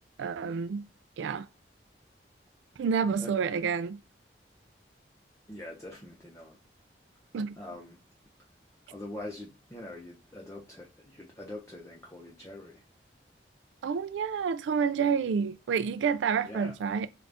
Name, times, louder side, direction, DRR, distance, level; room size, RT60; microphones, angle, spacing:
voice 1, 0.2-0.9 1.2-1.5 2.8-4.0 7.3-7.6 13.8-17.1, right 6 dB, 85° right, 0.3 m, -29 dB
voice 2, 3.2-3.6 5.5-6.6 7.6-8.0 8.9-12.8 16.4-16.7, left 1 dB, 15° left, 0.6 m, -44 dB
3.8 x 2.4 x 3.4 m
head